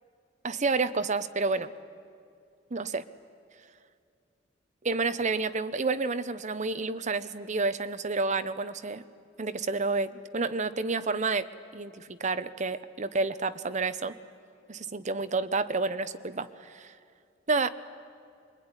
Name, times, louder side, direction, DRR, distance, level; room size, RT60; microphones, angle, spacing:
voice 1, 0.4-1.7 2.7-3.0 4.8-9.0 9.4-14.1 14.7-16.9 17.5-17.7, right 3 dB, 40° right, 12 dB, 0.9 m, -30 dB
25.0 x 22.5 x 9.9 m, 2.4 s
head